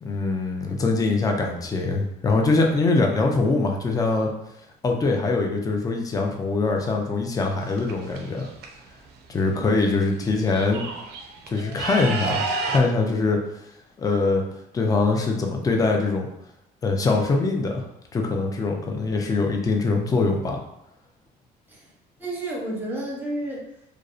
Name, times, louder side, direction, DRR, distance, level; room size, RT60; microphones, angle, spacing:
voice 1, 0.0-4.3 4.8-8.5 9.3-10.9 11.5-13.4 14.0-14.4 14.7-16.3 16.8-17.8 18.1-20.6, left 3 dB, 20° left, 2 dB, 0.4 m, -23 dB
sound 1, 7.6-8.7 9.8-9.9 10.2-12.8, right 4 dB, 75° right, 0.4 m, -31 dB
voice 2, 9.6-10.1 21.7-21.9 22.2-23.7, equal, 10° right, -3 dB, 0.8 m, -31 dB
2.6 x 2.0 x 2.4 m, 0.81 s
cardioid pair, 110°, 17 cm